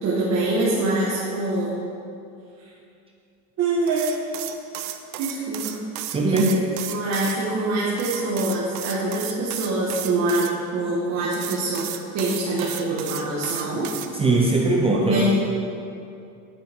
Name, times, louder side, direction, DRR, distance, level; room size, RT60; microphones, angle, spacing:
voice 1, 0.0-1.8 3.6-4.1 5.2-5.8 6.3-6.6 6.9-13.9 15.0-15.3, right 2 dB, 35° right, -6 dB, 1.6 m, -25 dB
sound 1, 3.9-7.4 8.0-10.5 11.3-14.1, right 12 dB, 75° right, 0.9 m, -33 dB
voice 2, 6.1-6.5 14.1-15.3, right 2 dB, 15° right, -1 dB, 0.6 m, -20 dB
11.0 x 9.2 x 3.7 m, 2.5 s
cardioid pair, 155°, 43 cm